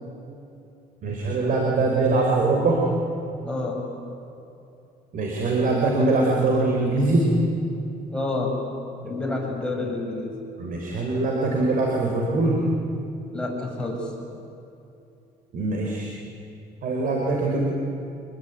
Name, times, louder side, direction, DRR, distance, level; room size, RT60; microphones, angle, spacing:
voice 1, 1.0-2.8 5.1-7.3 10.6-12.6 15.5-16.1 16.8-17.6, right 3 dB, 55° right, -1 dB, 4.6 m, -22 dB
voice 2, 3.4-3.9 8.1-8.5 9.0-10.3 13.3-14.1, left 2 dB, 5° left, -1 dB, 6.8 m, -29 dB
26.0 x 22.0 x 9.4 m, 2.8 s
cardioid pair, 110°, 17 cm